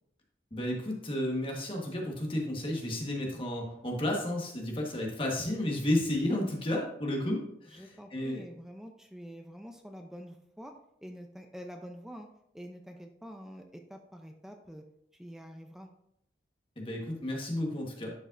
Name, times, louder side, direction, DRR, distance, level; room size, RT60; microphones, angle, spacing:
voice 1, 0.5-8.4 16.8-18.1, left 1 dB, 30° left, -1 dB, 1.3 m, -32 dB
voice 2, 7.7-10.7 11.0-12.3 12.5-14.8 15.1-15.9, equal, 5° right, 4 dB, 0.5 m, -46 dB
11.0 x 5.2 x 2.6 m, 0.73 s
head